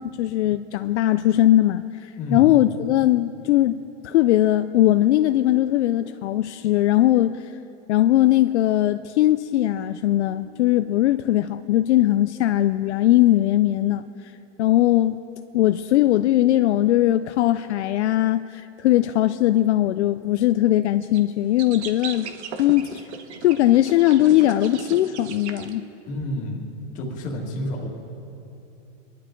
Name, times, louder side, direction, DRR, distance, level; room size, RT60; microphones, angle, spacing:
voice 1, 0.0-7.5 7.9-14.3 14.6-15.2 15.5-22.3 22.6-23.0 23.4-25.9, left 14 dB, 65° left, 11 dB, 0.5 m, -20 dB
sound 1, 21.0-21.2 21.6-25.7, right 7 dB, 60° right, 1.2 m, -37 dB
voice 2, 26.1-26.6 26.9-27.9, left 1 dB, 20° left, -2 dB, 1.9 m, -29 dB
24.5 x 11.5 x 3.8 m, 2.8 s
supercardioid pair, 175°, 37 cm